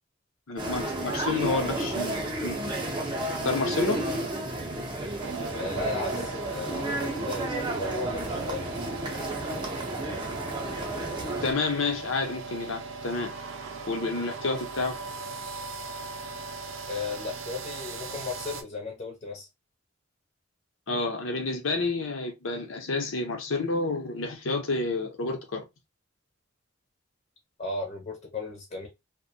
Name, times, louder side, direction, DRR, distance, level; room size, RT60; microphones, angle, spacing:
voice 1, 0.5-2.7 3.4-4.0 11.4-13.3 13.9-15.0 20.9-25.6, left 3 dB, 80° left, 0.7 m, -29 dB
sound 1, 0.6-11.5, right 1 dB, 25° right, 0.6 m, -32 dB
sound 2, 5.2-18.6, right 4 dB, 75° right, 0.5 m, -39 dB
voice 2, 5.5-8.7 16.9-19.5 27.6-28.9, left 3 dB, 40° left, 0.6 m, -35 dB
2.5 x 2.1 x 2.6 m
head